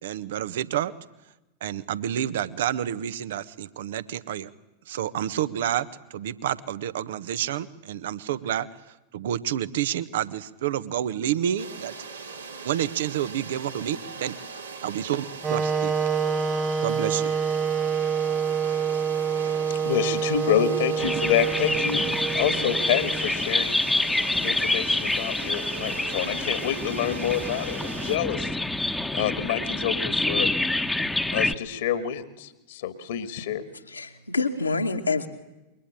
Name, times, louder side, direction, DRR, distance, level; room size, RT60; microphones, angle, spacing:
voice 1, 0.0-0.9 1.6-4.5 4.9-11.9 12.6-14.3 14.8-15.9 16.8-17.3, right 10 dB, 55° right, 15 dB, 1.3 m, -29 dB
sound 1, 11.6-28.2, right 5 dB, 75° right, 3.7 m, -40 dB
Wind instrument woodwind instrument, 15.4-23.4, right 6 dB, 15° right, 1.1 m, -27 dB
voice 2, 19.8-23.8 24.4-28.5 28.8-30.5 31.3-33.6, left 10 dB, 55° left, 10 dB, 2.1 m, -28 dB
sound 2, 21.0-31.5, left 2 dB, 5° left, 1.4 m, -27 dB
voice 3, 33.9-35.3, left 3 dB, 80° left, 3 dB, 2.5 m, -26 dB
27.5 x 23.5 x 9.1 m, 1.0 s
figure-of-eight pair, 90°, 0 cm